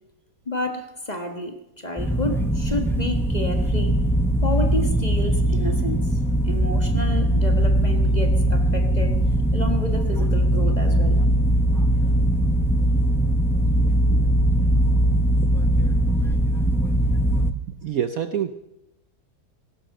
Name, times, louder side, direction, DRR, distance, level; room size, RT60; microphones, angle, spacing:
voice 1, 0.4-3.9 4.4-6.2 6.4-9.2 9.5-11.2, left 1 dB, 25° left, 6 dB, 1.4 m, -30 dB
sound 1, 2.0-17.5, right 1 dB, 5° left, 0.3 m, -20 dB
voice 2, 13.7-14.2 17.7-18.5, right 9 dB, 60° right, 11 dB, 1.0 m, -28 dB
16.5 x 12.5 x 6.6 m, 0.87 s
omnidirectional pair, 2.0 m